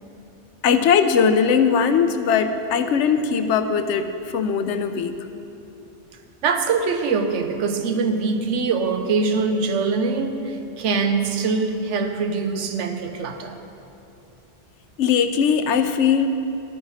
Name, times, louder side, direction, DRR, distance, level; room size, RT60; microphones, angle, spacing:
voice 1, 0.6-5.2 15.0-16.3, left 6 dB, 80° left, 9 dB, 0.9 m, -20 dB
voice 2, 6.4-13.6, right 4 dB, 85° right, 6 dB, 1.1 m, -23 dB
11.5 x 8.8 x 4.1 m, 2.8 s
omnidirectional pair, 1.2 m